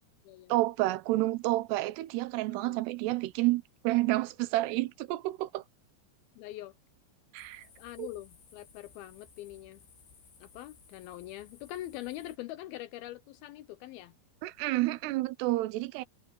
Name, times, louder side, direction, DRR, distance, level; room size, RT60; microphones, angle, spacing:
voice 1, 0.5-5.6 7.3-7.6 8.0-8.1 14.4-16.0, right 18 dB, 75° right, 2.7 m, -29 dB
voice 2, 2.5-2.8 6.4-6.7 7.8-9.8 10.4-14.1, left 15 dB, 85° left, 2.1 m, -43 dB
sound 1, 7.4-12.4, left 5 dB, 70° left, 7.5 m, -59 dB
omnidirectional pair, 5.3 m